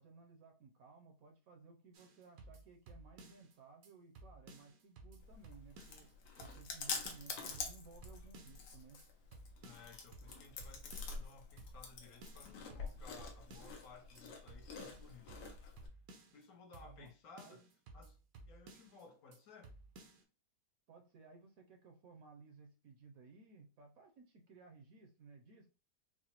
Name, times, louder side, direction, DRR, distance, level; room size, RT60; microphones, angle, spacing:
voice 1, 0.0-6.1 6.4-9.0 16.8-17.1 17.4-17.6 20.9-25.7, right 4 dB, 65° right, 1.0 m, -59 dB
sound 1, 1.9-3.5 3.8-3.9 4.2-6.1 6.4-6.8 7.1-8.7 9.0-9.1 9.3-11.3 11.6-11.9 12.2-13.9 14.2-14.3 14.5-16.4 16.7-17.1 17.4-19.0 19.3-19.4 19.6-20.2, right 2 dB, 85° right, 1.4 m, -57 dB
Chewing mastication, 5.2-15.9, left 4 dB, 85° left, 1.4 m, -47 dB
voice 2, 9.6-15.9 16.3-17.6 17.9-18.2 18.5-19.7, left 4 dB, 65° left, 1.2 m, -58 dB
4.9 x 2.1 x 2.9 m
omnidirectional pair, 1.8 m